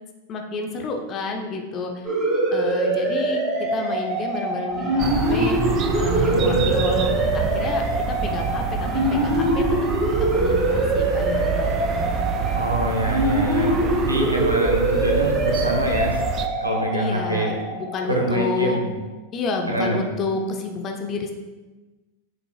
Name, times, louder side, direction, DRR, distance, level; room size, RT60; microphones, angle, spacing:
voice 1, 0.3-2.1 2.5-9.6 10.3-12.1 16.9-18.8 19.3-21.3, left 4 dB, 30° left, 3 dB, 0.9 m, -30 dB
sound 1, 2.0-18.4, right 1 dB, 15° right, 2.0 m, -23 dB
sound 2, 5.0-16.5, right 7 dB, 30° right, 0.5 m, -27 dB
voice 2, 6.3-6.8 12.5-16.2 16.6-17.5 18.1-18.9 19.7-20.1, right 1 dB, 85° right, 0 dB, 1.3 m, -25 dB
7.7 x 6.6 x 2.4 m, 1.2 s
figure-of-eight pair, 90°, 0 cm